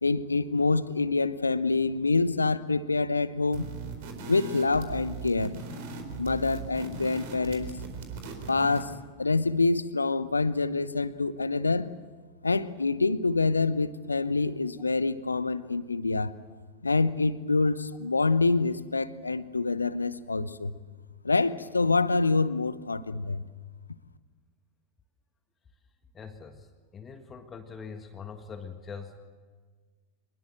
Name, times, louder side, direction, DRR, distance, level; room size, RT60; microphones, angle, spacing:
voice 1, 0.0-3.7 4.3-5.5 6.2-7.7 8.5-8.9 9.2-11.9 12.4-16.3 16.8-20.7 21.2-23.4, left 3 dB, 80° left, 16 dB, 0.9 m, -26 dB
sound 1, 3.5-9.0, right 4 dB, 50° right, 4.3 m, -39 dB
voice 2, 26.1-26.7 26.9-29.2, left 5 dB, 20° left, 6 dB, 1.7 m, -42 dB
25.0 x 21.5 x 7.7 m, 1.4 s
figure-of-eight pair, 90°, 0 cm